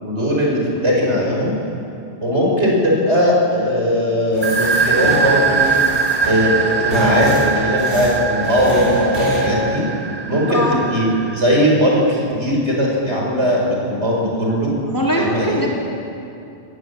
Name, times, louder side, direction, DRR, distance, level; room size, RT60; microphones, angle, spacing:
voice 1, 0.0-1.5 2.2-5.7 6.2-9.8 10.3-11.1 11.3-14.7 15.2-15.6, equal, 75° right, -2 dB, 5.5 m, -18 dB
sound 1, 4.3-9.4, right 1 dB, 50° left, 5.4 m, -24 dB
sound 2, 4.4-11.9, right 5 dB, 25° right, 0.7 m, -22 dB
voice 2, 14.8-15.7, equal, 15° left, -3 dB, 3.5 m, -21 dB
20.5 x 18.5 x 8.4 m, 2.7 s
omnidirectional pair, 1.2 m